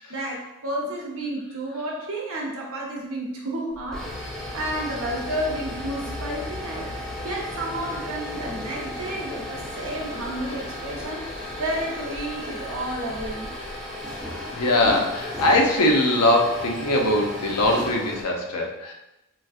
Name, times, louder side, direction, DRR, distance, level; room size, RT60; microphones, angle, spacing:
voice 1, 0.1-4.1 4.5-6.9 7.2-11.3 11.6-13.5, right 1 dB, 65° right, -1 dB, 0.7 m, -31 dB
sound 1, 3.7-18.2, left 1 dB, 5° left, 0.5 m, -34 dB
voice 2, 14.6-18.9, left 1 dB, 90° left, 1 dB, 0.6 m, -21 dB
3.9 x 2.5 x 2.4 m, 0.92 s
head